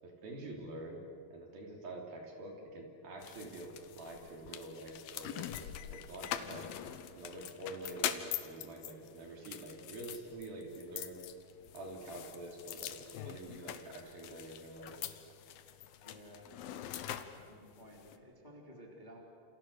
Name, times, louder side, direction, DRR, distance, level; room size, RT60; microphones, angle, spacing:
voice 1, 0.0-6.7 7.1-11.2 11.7-15.1, right 2 dB, 55° right, 1 dB, 4.7 m, -47 dB
sound 1, 3.2-18.2, left 11 dB, 70° left, 2.3 m, -44 dB
voice 2, 16.0-19.2, equal, 10° left, -1 dB, 2.7 m, -55 dB
29.5 x 28.5 x 6.7 m, 2.5 s
omnidirectional pair, 5.3 m